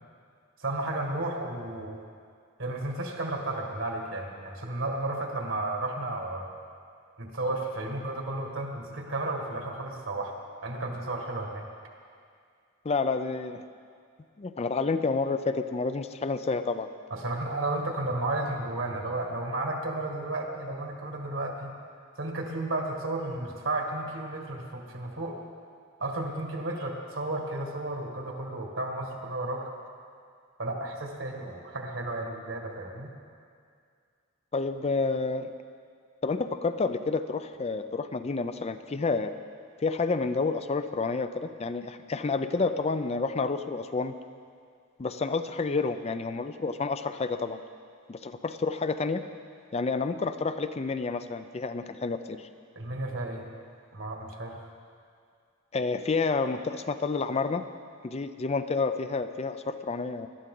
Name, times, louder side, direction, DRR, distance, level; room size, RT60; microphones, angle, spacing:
voice 1, 0.6-2.0 2.6-6.5 7.2-10.3 10.6-11.6 17.1-21.7 22.2-25.4 26.0-29.7 30.6-33.1 52.8-53.4 53.9-54.6, right 2 dB, 65° right, 1 dB, 1.9 m, -33 dB
voice 2, 12.8-13.6 14.4-16.9 34.5-35.5 36.2-39.3 39.8-44.1 45.0-47.6 48.1-49.2 49.7-52.5 55.7-57.6 58.0-60.3, left 4 dB, 30° left, 10 dB, 0.4 m, -29 dB
21.0 x 12.0 x 3.8 m, 2.2 s
head